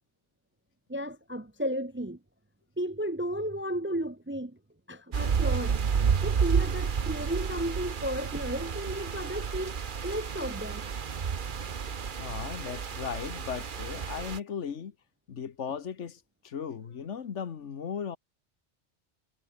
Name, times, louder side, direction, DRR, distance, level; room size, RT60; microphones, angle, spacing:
voice 1, 0.9-2.2 2.8-4.6 4.9-5.8 6.2-9.8 10.0-10.9, equal, 15° right, 0.5 m, -33 dB
sound 1, 5.1-14.4, right 6 dB, 45° right, 1.1 m, -30 dB
voice 2, 12.2-14.9 15.3-18.2, left 7 dB, 75° left, 1.5 m, -37 dB
omnidirectional pair, 1.2 m